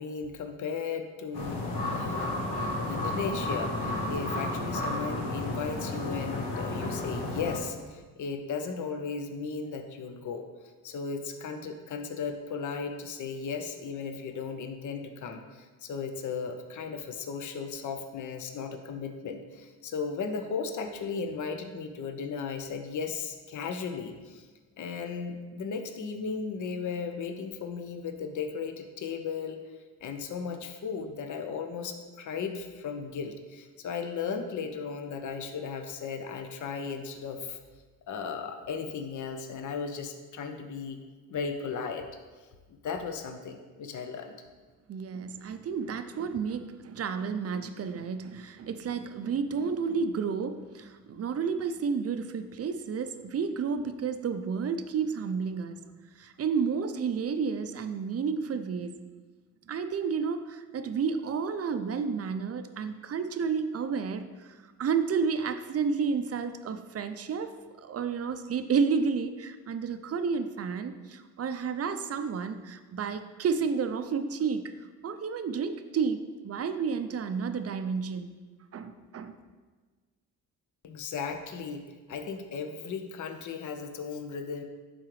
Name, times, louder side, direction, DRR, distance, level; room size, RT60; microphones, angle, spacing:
voice 1, 0.0-10.4 10.8-24.5 24.8-29.6 30.0-37.6 38.1-41.0 41.3-42.1 42.8-44.3 80.8-81.8 82.1-84.6, left 5 dB, 50° left, 6 dB, 0.8 m, -36 dB
sound 1, 1.3-7.6, left 1 dB, 90° left, 1.2 m, -32 dB
voice 2, 44.9-55.8 56.2-58.9 59.7-67.5 67.8-74.7 75.0-78.3 78.7-79.3, right 5 dB, 40° right, 9 dB, 0.5 m, -31 dB
10.5 x 3.8 x 3.2 m, 1.4 s
cardioid pair, 80°, 38 cm